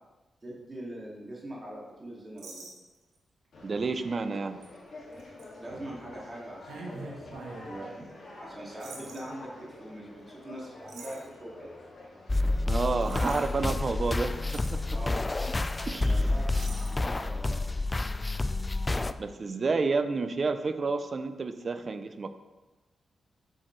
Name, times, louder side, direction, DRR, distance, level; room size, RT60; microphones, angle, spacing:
voice 1, 0.4-2.7 5.6-7.9 8.4-11.7 14.9-15.2 16.1-17.8, right 1 dB, 30° right, -4 dB, 2.5 m, -42 dB
sound 1, 2.4-3.2 3.8-3.9 4.6-4.7 5.2-5.5 6.6-7.7 8.8-9.2 10.9-11.2 12.9-13.4 14.0-14.1 14.3-14.8 15.7-15.8 16.1-16.2 16.5-17.0, right 3 dB, 85° right, 1.3 m, -44 dB
Conversation, 3.5-16.6, left 2 dB, 60° left, 2.4 m, -49 dB
voice 2, 3.6-4.6 12.7-15.0 15.9-16.3 19.2-22.3, right 4 dB, 50° right, 11 dB, 0.5 m, -30 dB
sound 2, 12.3-19.1, left 2 dB, 25° left, 0.3 m, -29 dB
7.5 x 6.3 x 3.3 m, 1.1 s
cardioid pair, 55°, 0 cm